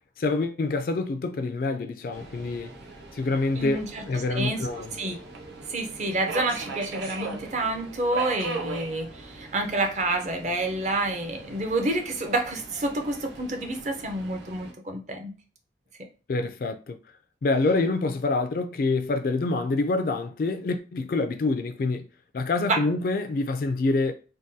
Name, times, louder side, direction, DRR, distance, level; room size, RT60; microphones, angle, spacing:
voice 1, 0.2-2.7 3.1-4.9 16.3-17.0 17.4-22.1 22.3-24.1, left 3 dB, 50° left, 0.3 m, -26 dB
Subway metro underground, 2.1-14.7, right 3 dB, 75° right, 0.7 m, -40 dB
voice 2, 3.6-5.2 5.7-15.3 22.7-22.8, right 2 dB, 40° right, 0.5 m, -28 dB
3.6 x 2.2 x 2.6 m
head